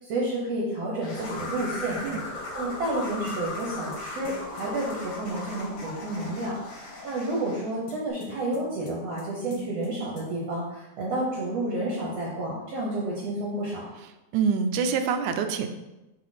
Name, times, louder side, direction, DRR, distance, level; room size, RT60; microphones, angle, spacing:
voice 1, 0.0-13.9, right 1 dB, 65° right, -3 dB, 1.9 m, -30 dB
sound 1, 1.0-7.7, left 2 dB, 90° left, 3.5 m, -37 dB
sound 2, 3.3-5.0 7.9-9.3 9.5-9.9 10.2-10.3, equal, 75° left, 1.9 m, -44 dB
voice 2, 14.3-15.7, right 6 dB, 85° right, 8 dB, 2.1 m, -25 dB
5.8 x 5.5 x 4.1 m, 0.99 s
omnidirectional pair, 3.4 m